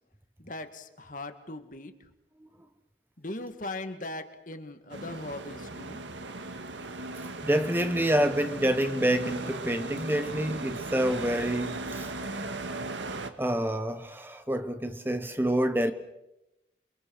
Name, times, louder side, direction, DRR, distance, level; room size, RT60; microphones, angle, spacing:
voice 1, 0.4-1.9 3.2-6.0, left 2 dB, 45° left, 2.0 m, -39 dB
sound 1, 4.9-13.3, right 2 dB, 75° right, 1.9 m, -37 dB
voice 2, 7.4-12.1 13.4-15.9, right 1 dB, 10° right, 0.9 m, -27 dB
29.0 x 24.0 x 6.5 m
head